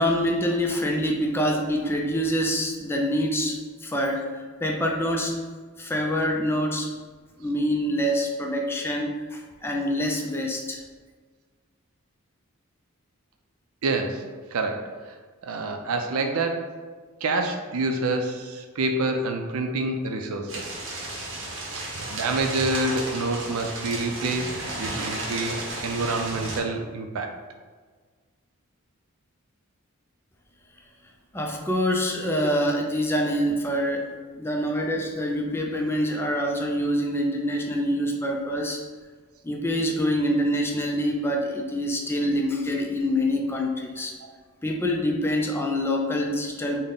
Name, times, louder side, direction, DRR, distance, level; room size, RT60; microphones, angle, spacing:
voice 1, 0.0-5.4 5.8-6.9 7.4-10.8 31.3-38.8 39.4-44.1 44.6-46.8, equal, 10° left, 1 dB, 0.4 m, -26 dB
voice 2, 13.8-14.2 14.5-14.9 15.4-16.8 17.2-20.8 22.1-27.3, right 2 dB, 85° right, 5 dB, 0.4 m, -27 dB
sound 1, 20.5-26.6, right 2 dB, 60° right, 0.8 m, -33 dB
3.8 x 2.1 x 3.6 m, 1.5 s
head